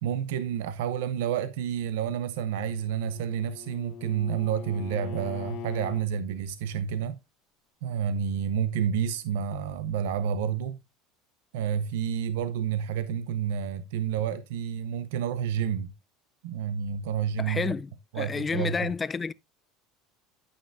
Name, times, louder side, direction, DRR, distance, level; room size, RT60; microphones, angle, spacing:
voice 1, 0.0-7.2 7.8-10.8 11.5-15.9 16.4-17.7 18.1-18.9, right 8 dB, 85° right, 0.7 m, -29 dB
Bowed string instrument, 2.3-6.1, left 11 dB, 50° left, 1.2 m, -42 dB
voice 2, 17.4-19.3, left 5 dB, 20° left, 0.4 m, -30 dB
9.3 x 8.9 x 2.6 m
supercardioid pair, 135°, 0 cm